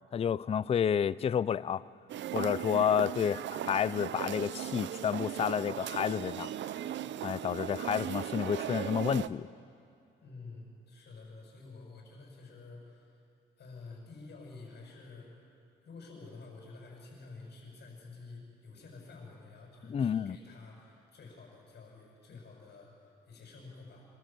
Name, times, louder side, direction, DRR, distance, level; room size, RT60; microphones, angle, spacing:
voice 1, 0.1-1.8 2.3-6.5 7.2-9.5 19.9-20.4, left 8 dB, 30° left, 0.4 m, -30 dB
sound 1, 2.1-9.3, right 11 dB, 65° right, 0.6 m, -37 dB
voice 2, 10.2-13.2 13.6-15.3 15.8-24.0, left 3 dB, 60° left, 7.6 m, -50 dB
26.0 x 13.5 x 7.7 m
cardioid pair, 90°, 20 cm